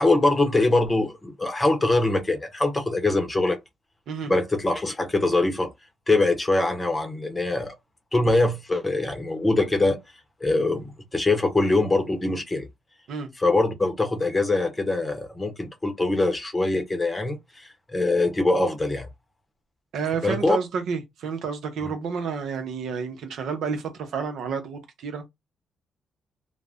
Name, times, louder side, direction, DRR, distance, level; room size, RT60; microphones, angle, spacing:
voice 1, 0.0-3.6 4.3-5.7 6.1-7.7 8.1-10.0 10.4-12.7 13.4-19.1 20.2-20.6 21.8-21.9, left 2 dB, 20° left, 0.7 m, -23 dB
voice 2, 19.9-25.3, right 6 dB, 75° right, 0.7 m, -30 dB
2.4 x 2.1 x 3.4 m
cardioid pair, 90°, 0 cm